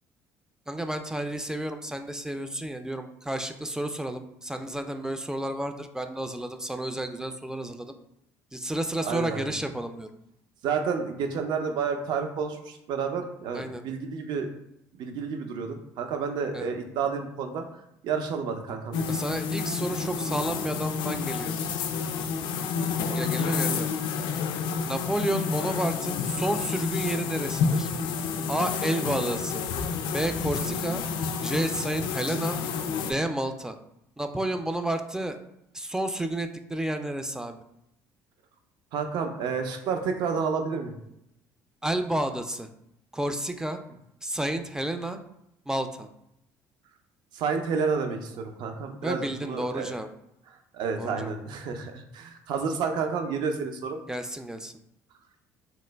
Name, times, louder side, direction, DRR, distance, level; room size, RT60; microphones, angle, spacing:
voice 1, 0.7-7.9 8.5-10.1 13.5-13.8 16.5-16.7 19.1-21.6 23.1-23.9 24.9-27.9 28.5-29.6 30.1-31.0 31.4-32.6 33.0-33.8 34.2-35.4 35.7-37.6 41.8-42.7 43.1-43.8 44.2-45.2 45.7-46.1 49.0-50.1 51.0-51.3 54.1-54.7, right 1 dB, 5° right, 7 dB, 0.3 m, -31 dB
voice 2, 9.0-9.5 10.6-14.5 15.0-17.6 18.0-19.1 23.1-23.4 38.9-40.9 47.3-49.9 50.7-54.0, right 5 dB, 65° right, 5 dB, 0.5 m, -30 dB
sound 1, 18.9-33.1, left 5 dB, 65° left, 0.4 m, -29 dB
3.0 x 2.1 x 3.3 m, 0.80 s
hypercardioid pair, 70°, 8 cm